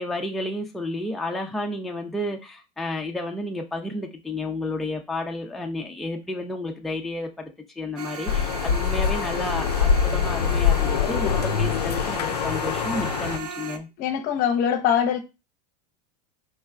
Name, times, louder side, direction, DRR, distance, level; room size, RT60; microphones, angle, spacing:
voice 1, 0.0-7.5 7.8-13.9, left 2 dB, ahead, 0.5 m, -31 dB
sound 1, 8.0-13.8, right 5 dB, 90° right, 0.5 m, -36 dB
sound 2, 8.3-13.4, left 7 dB, 85° left, 0.4 m, -24 dB
voice 2, 14.0-15.2, left 8 dB, 45° left, 0.7 m, -22 dB
4.5 x 3.1 x 2.3 m
hypercardioid pair, 95°, 20 cm